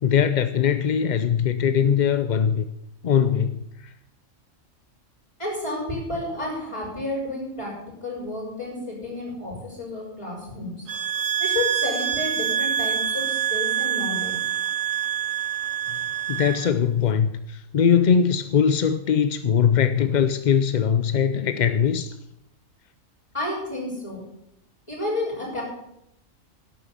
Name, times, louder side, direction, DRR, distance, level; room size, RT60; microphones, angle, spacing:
voice 1, 0.0-2.6 3.0-3.6 16.3-22.1, left 7 dB, 55° left, 0.5 m, -21 dB
voice 2, 5.4-7.7 8.0-10.9 11.4-14.4 23.3-24.2 24.9-25.6, left 2 dB, 20° left, 6.2 m, -31 dB
sound 1, 10.9-16.7, right 9 dB, 80° right, 1.2 m, -26 dB
11.5 x 8.5 x 8.2 m
omnidirectional pair, 1.4 m